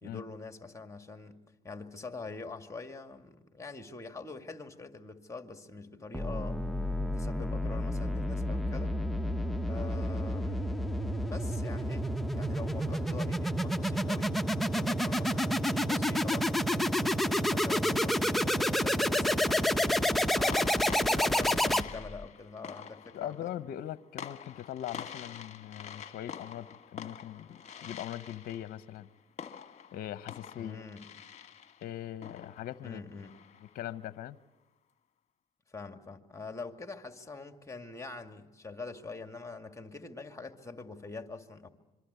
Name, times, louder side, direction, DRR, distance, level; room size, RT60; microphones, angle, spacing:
voice 1, 0.0-1.4 1.6-6.6 7.1-8.9 9.7-10.9 11.3-14.3 14.7-17.0 17.5-20.6 21.1-23.5 30.6-31.1 32.8-33.3 35.7-41.7, left 3 dB, 20° left, 6 dB, 2.2 m, -44 dB
sound 1, 6.1-22.2, equal, ahead, 1.1 m, -29 dB
sound 2, 19.4-19.6 20.5-33.9, left 7 dB, 45° left, 1.4 m, -47 dB
voice 2, 23.1-29.1 29.9-30.8 31.8-33.0 33.7-34.4, left 12 dB, 65° left, 15 dB, 0.8 m, -41 dB
26.5 x 23.5 x 8.2 m, 1.1 s
supercardioid pair, 65°, 17 cm